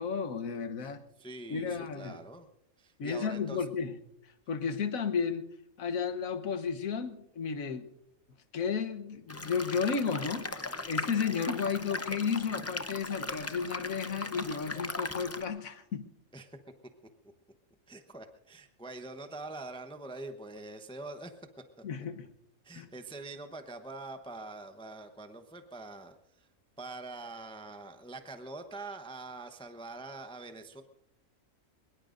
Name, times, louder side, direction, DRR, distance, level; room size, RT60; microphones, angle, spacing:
voice 1, 0.0-1.0 1.5-2.2 3.0-4.0 4.5-5.4 5.8-7.9 8.5-16.1 21.8-22.3 22.7-22.9, left 6 dB, 75° left, 10 dB, 1.5 m, -33 dB
voice 2, 1.2-2.5 2.8-3.6 16.3-16.6 17.9-21.3 22.6-26.5 26.8-30.8, right 2 dB, 5° left, 7 dB, 0.7 m, -44 dB
sound 1, 9.3-15.4, left 2 dB, 25° left, 0.3 m, -38 dB
23.0 x 21.5 x 2.6 m, 0.81 s
omnidirectional pair, 1.5 m